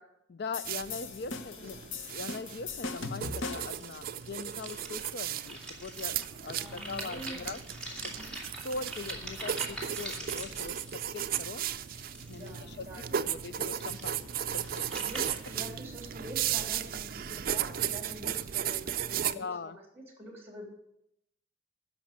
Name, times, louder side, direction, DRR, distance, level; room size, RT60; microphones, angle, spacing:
voice 1, 0.3-1.8 2.1-7.6 8.0-8.1 8.6-11.7 12.3-14.9 19.4-19.8, left 4 dB, 55° left, 15 dB, 0.5 m, -41 dB
sound 1, 0.5-3.8, left 3 dB, 85° left, 0.9 m, -39 dB
sound 2, 0.6-19.3, right 10 dB, 50° right, 0.4 m, -36 dB
voice 2, 1.2-1.9 6.5-8.3 12.3-13.1 14.9-20.7, right 1 dB, 10° right, 1 dB, 3.4 m, -46 dB
sound 3, 3.2-12.8 13.5-15.5, right 1 dB, 5° left, 2.2 m, -44 dB
10.5 x 6.4 x 9.0 m, 0.81 s
head